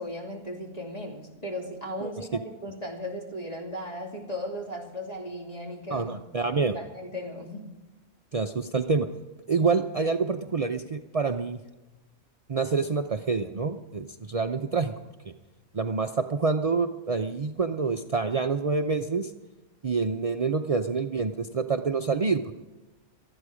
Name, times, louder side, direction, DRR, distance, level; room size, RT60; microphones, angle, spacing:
voice 1, 0.0-6.1 6.7-7.7, equal, 25° left, 0 dB, 2.8 m, -36 dB
voice 2, 2.0-2.4 5.9-6.8 8.3-9.1 9.5-11.6 12.5-14.9 15.2-15.3 15.7-19.3 19.8-22.5, right 4 dB, 65° right, 6 dB, 0.3 m, -27 dB
19.0 x 13.0 x 5.0 m, 1.1 s
omnidirectional pair, 1.5 m